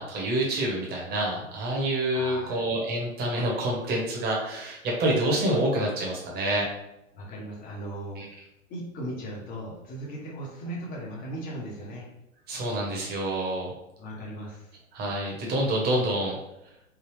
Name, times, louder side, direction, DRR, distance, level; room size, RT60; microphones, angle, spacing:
voice 1, 0.0-6.7 8.2-8.3 12.5-13.7 14.9-16.4, right 1 dB, 25° right, -1 dB, 1.0 m, -27 dB
voice 2, 2.1-2.6 7.1-8.2 8.7-12.1 14.0-14.7, right 1 dB, 20° left, -3 dB, 0.8 m, -37 dB
3.5 x 2.2 x 3.2 m, 0.87 s
hypercardioid pair, 120°, 40 cm